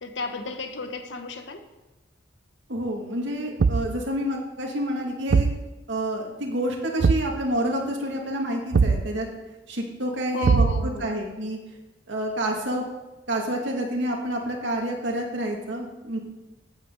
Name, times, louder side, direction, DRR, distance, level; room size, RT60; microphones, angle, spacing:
voice 1, 0.0-1.7 10.3-11.1, left 3 dB, 70° left, 6 dB, 1.1 m, -33 dB
voice 2, 2.7-5.5 5.9-9.3 9.7-11.6 12.1-12.8 13.3-16.2, right 1 dB, 75° right, 0 dB, 2.3 m, -28 dB
Thump thud, 3.6-4.0 5.3-5.6 7.0-7.4 8.7-9.1 10.4-11.0, right 4 dB, 55° right, 0.4 m, -21 dB
16.0 x 8.9 x 4.0 m, 1.1 s
head